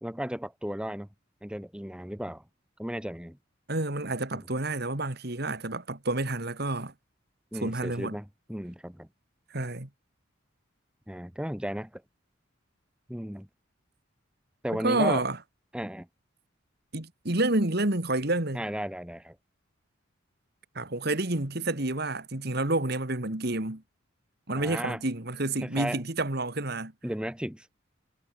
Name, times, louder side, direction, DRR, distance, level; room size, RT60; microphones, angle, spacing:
voice 1, 0.0-1.1 1.4-2.4 2.8-3.4 4.3-4.4 7.5-9.1 11.1-12.0 13.1-13.5 14.6-15.2 15.7-16.1 18.5-19.4 24.6-25.0 25.6-26.0 27.0-27.7, equal, 5° right, 1.1 m, -34 dB
voice 2, 3.7-6.9 7.6-8.2 9.5-9.9 14.8-15.4 16.9-18.6 20.8-23.8 24.5-26.9, right 2 dB, 50° right, 2.3 m, -29 dB
head